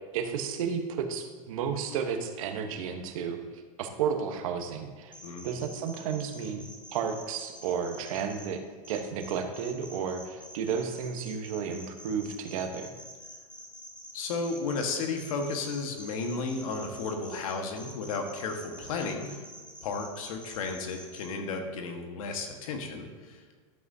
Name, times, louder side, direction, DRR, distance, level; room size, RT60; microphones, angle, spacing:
voice 1, 0.1-3.4 3.8-5.1 5.4-12.9, right 6 dB, 70° right, 6 dB, 1.1 m, -32 dB
sound 1, 5.1-8.5 8.8-21.3, equal, 5° left, 1.9 m, -47 dB
voice 2, 14.1-19.4 19.8-23.4, left 4 dB, 75° left, 4 dB, 1.5 m, -33 dB
12.0 x 7.9 x 2.8 m, 1.5 s
hypercardioid pair, 115°, 18 cm